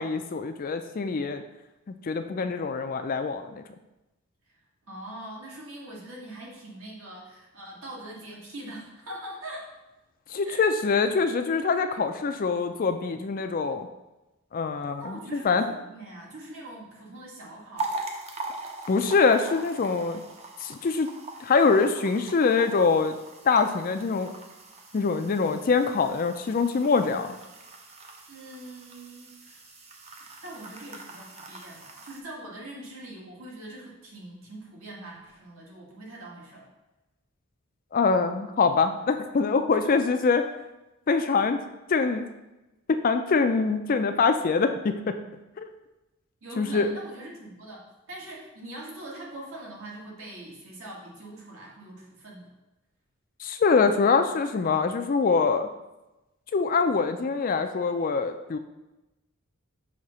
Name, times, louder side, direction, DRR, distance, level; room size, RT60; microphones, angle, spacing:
voice 1, 0.0-1.4 1.9-3.6 10.3-13.9 14.5-15.2 15.4-15.6 18.9-20.2 20.6-21.1 21.4-23.2 23.4-24.3 24.9-27.4 37.9-40.5 41.1-41.6 41.9-42.3 42.9-45.2 45.6-45.7 46.6-46.9 53.4-55.7 56.5-58.6, left 4 dB, 40° left, 8 dB, 0.3 m, -24 dB
voice 2, 4.5-9.7 10.4-10.7 15.0-18.0 28.3-29.6 30.4-36.7 39.8-40.1 46.4-52.5, right 1 dB, 70° right, -3 dB, 1.6 m, -42 dB
sound 1, 17.8-32.2, right 3 dB, 30° right, 0.6 m, -41 dB
6.3 x 2.9 x 5.5 m, 1.0 s
head